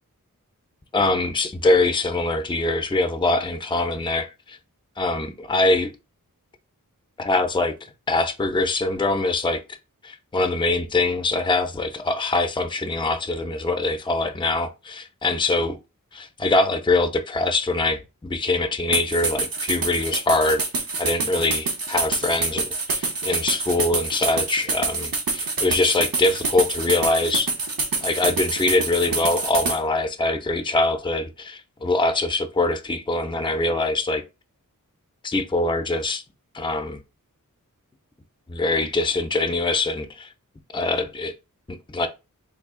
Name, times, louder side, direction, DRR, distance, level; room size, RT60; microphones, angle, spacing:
voice 1, 0.9-4.6 5.0-5.9 7.2-9.8 10.0-15.8 16.1-27.5 28.0-34.2 35.2-36.2 36.5-37.0 38.5-40.3 40.7-41.3 41.7-42.1, left 2 dB, 15° left, 0.4 m, -23 dB
sound 1, 18.9-29.8, right 3 dB, 90° right, 0.8 m, -26 dB
3.3 x 2.4 x 3.6 m
wide cardioid pair, 50°, 34 cm